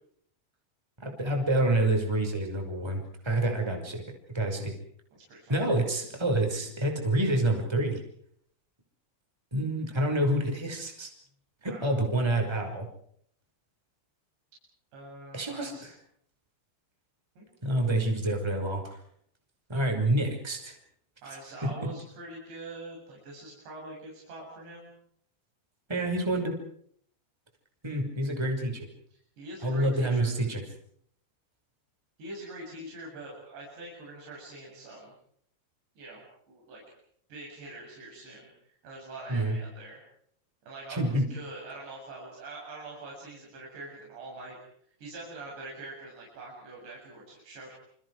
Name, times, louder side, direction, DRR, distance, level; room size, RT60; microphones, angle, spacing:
voice 1, 1.0-4.0 4.3-4.7 5.5-8.0 9.5-11.1 11.6-12.9 15.3-15.9 17.6-19.0 19.7-20.7 21.6-21.7 25.9-26.5 27.8-28.9 29.6-30.6 39.3-39.6 40.9-41.3, right 1 dB, 5° right, 3 dB, 5.3 m, -27 dB
voice 2, 5.1-5.6 11.6-11.9 14.9-15.9 17.4-17.5 21.2-24.9 29.4-30.3 32.2-35.1 36.0-36.8 37.3-40.0 40.7-44.6 45.0-47.8, right 2 dB, 80° right, -3 dB, 9.8 m, -44 dB
29.5 x 29.0 x 4.9 m, 0.67 s
omnidirectional pair, 4.9 m